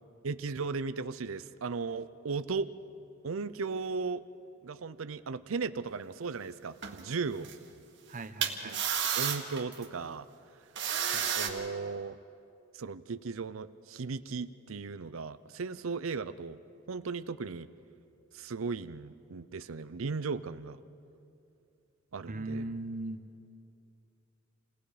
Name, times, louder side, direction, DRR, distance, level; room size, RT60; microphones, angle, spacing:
voice 1, 0.2-2.7 3.2-4.2 4.6-7.5 8.6-8.8 9.2-10.3 11.1-12.2 12.7-16.6 16.9-17.7 18.3-20.8 22.1-22.7, right 4 dB, 85° right, 13 dB, 0.6 m, -36 dB
sound 1, 6.8-7.0 7.4-7.5 8.4-9.8 10.8-11.5, right 8 dB, 65° right, 1.8 m, -31 dB
voice 2, 8.1-8.8 22.3-23.2, right 2 dB, 40° right, 9 dB, 0.9 m, -38 dB
28.5 x 18.5 x 5.0 m, 2.6 s
head